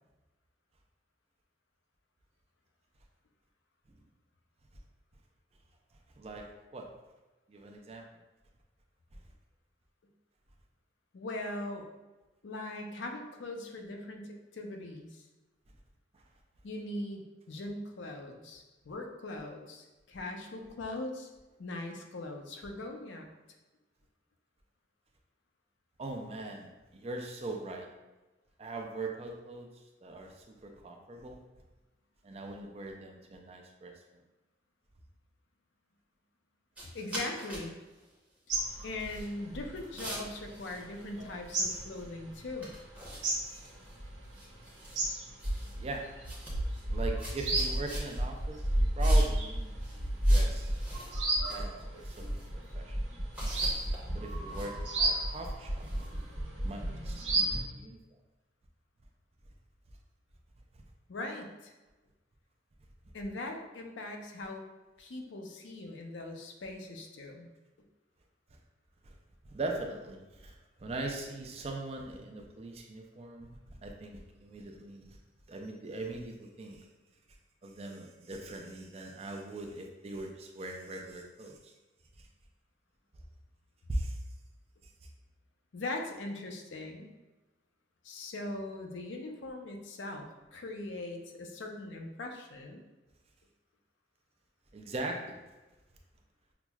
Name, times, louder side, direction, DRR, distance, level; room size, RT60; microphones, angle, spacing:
voice 1, 6.2-7.0 7.5-8.1 16.1-16.2 26.0-28.0 28.6-29.7 30.0-31.4 32.2-33.9 45.8-46.1 46.9-49.8 50.1-50.7 51.5-53.0 53.7-56.1 56.6-58.0 69.0-69.1 69.4-75.2 75.5-76.9 77.6-81.7 83.9-84.2 94.7-95.4, right 2 dB, 35° right, 2 dB, 0.4 m, -41 dB
voice 2, 11.1-11.9 12.4-15.2 16.6-21.3 21.6-23.3 36.9-37.8 38.8-42.7 61.1-61.7 63.1-64.6 65.0-67.5 85.7-87.1 88.0-92.8, left 2 dB, 80° left, 3 dB, 0.5 m, -40 dB
sound 1, 36.8-37.7 37.9-38.1 38.9-39.3 39.8-41.2 41.4-42.0 42.3-42.4 42.6-44.0 44.2-45.1 45.4-46.0 46.2-46.8 47.2-48.2 49.0-49.5 49.8-51.6 52.0-52.5 53.3-56.2, right 1 dB, 10° right, 0.7 m, -45 dB
sound 2, 38.5-40.8 41.1-44.5 44.8-57.6, right 1 dB, 80° right, 1.1 m, -31 dB
5.8 x 2.0 x 2.3 m, 1.1 s
head